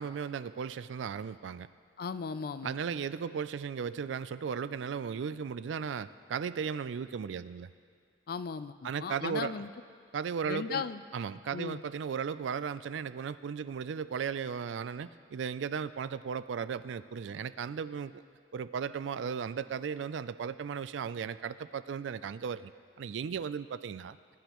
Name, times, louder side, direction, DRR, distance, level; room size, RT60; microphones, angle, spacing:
voice 1, 0.0-1.7 2.6-7.7 8.8-9.6 10.1-10.8 11.1-18.2 18.5-22.7 23.0-24.2, right 6 dB, 85° right, 15 dB, 0.4 m, -36 dB
voice 2, 2.0-2.7 8.3-9.7 10.4-11.0 11.5-11.8, left 5 dB, 55° left, 13 dB, 0.4 m, -37 dB
20.5 x 10.0 x 3.0 m, 2.1 s
head